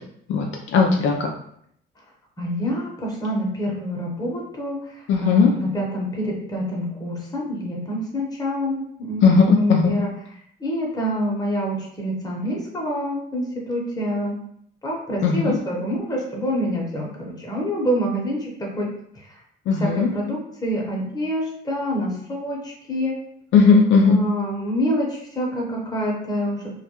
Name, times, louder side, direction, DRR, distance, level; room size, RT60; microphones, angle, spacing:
voice 1, 0.3-1.2 5.1-5.5 9.2-10.0 15.2-15.6 19.7-20.1 23.5-24.2, left 5 dB, 70° left, 1 dB, 0.4 m, -17 dB
voice 2, 2.4-4.8 5.2-10.1 10.6-14.4 14.8-18.9 19.8-23.1 24.0-26.7, equal, 20° left, -3 dB, 0.9 m, -26 dB
2.3 x 2.1 x 2.8 m, 0.69 s
cardioid pair, 90°, 20 cm